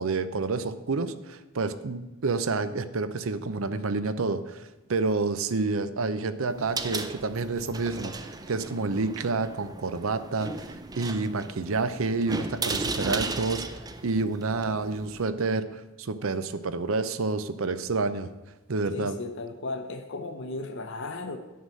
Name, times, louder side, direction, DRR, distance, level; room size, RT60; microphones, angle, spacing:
voice 1, 0.0-13.6 14.0-18.3 18.7-19.2, right 3 dB, 75° right, 12 dB, 0.6 m, -29 dB
sound 1, 6.5-15.2, right 3 dB, 20° right, 0.5 m, -36 dB
voice 2, 18.9-21.4, left 3 dB, 60° left, 6 dB, 0.8 m, -35 dB
9.4 x 5.6 x 7.5 m, 1.1 s
head